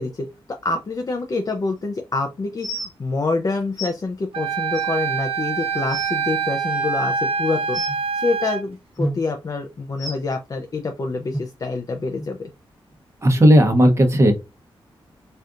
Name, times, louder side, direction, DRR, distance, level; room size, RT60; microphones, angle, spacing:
voice 1, 0.0-7.8 8.1-12.5, left 3 dB, 40° left, 4 dB, 0.5 m, -26 dB
sound 1, 2.6-2.9 3.8-3.9 4.7-4.8 5.4-5.5 5.8-6.1 7.7-8.0 9.0-9.2 10.0-10.2 11.3-11.4 12.2-12.3 12.9-13.0, right 1 dB, 5° right, 1.3 m, -28 dB
Wind instrument woodwind instrument, 4.3-8.6, right 5 dB, 80° right, 0.5 m, -25 dB
voice 2, 13.2-14.3, equal, 30° right, 4 dB, 0.9 m, -14 dB
4.2 x 2.4 x 2.5 m, 0.26 s
wide cardioid pair, 115°, 10 cm